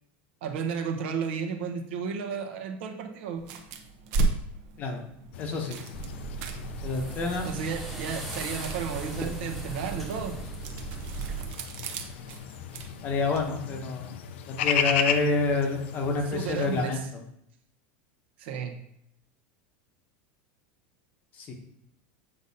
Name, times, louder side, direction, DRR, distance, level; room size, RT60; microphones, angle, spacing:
voice 1, 0.4-3.4 7.4-10.4 16.3-17.1 18.4-18.7, right 6 dB, 75° right, 3 dB, 1.1 m, -33 dB
sound 1, 3.4-13.5, right 3 dB, 45° right, 0.8 m, -36 dB
sound 2, 5.3-16.9, left 8 dB, 85° left, 0.6 m, -35 dB
voice 2, 5.4-5.8 6.8-7.5 13.0-14.2 14.5-17.0 21.4-21.5, left 3 dB, 30° left, 4 dB, 0.8 m, -28 dB
sound 3, 5.9-11.5, right 4 dB, ahead, 1.0 m, -37 dB
8.1 x 5.2 x 2.8 m, 0.74 s
supercardioid pair, 175°, 6 cm